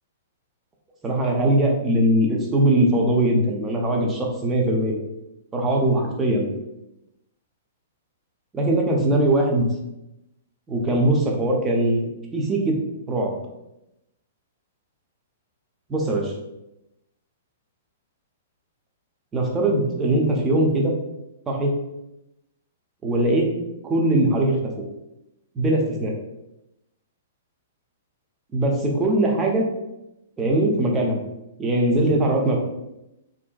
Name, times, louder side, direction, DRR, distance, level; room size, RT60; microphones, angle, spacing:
voice 1, 1.0-5.0 5.5-6.5 8.5-9.7 10.7-12.7 13.1-13.3 15.9-16.3 19.3-20.9 21.5-21.7 23.0-23.4 23.8-24.6 25.6-26.1 28.5-29.6 30.4-31.2 31.6-32.6, right 1 dB, 20° right, 0 dB, 0.5 m, -21 dB
2.5 x 2.1 x 2.3 m, 0.90 s
figure-of-eight pair, 110°, 0 cm